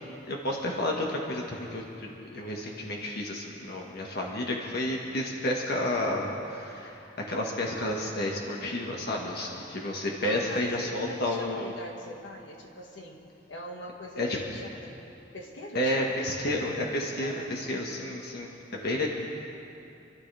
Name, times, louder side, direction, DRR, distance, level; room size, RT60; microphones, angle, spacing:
voice 1, 0.3-11.7 14.2-14.4 15.7-19.1, left 1 dB, 60° left, -1 dB, 1.7 m, -31 dB
voice 2, 10.2-15.0 15.3-16.4 17.2-17.6, equal, 80° left, 0 dB, 1.8 m, -42 dB
27.5 x 12.5 x 3.5 m, 2.8 s
head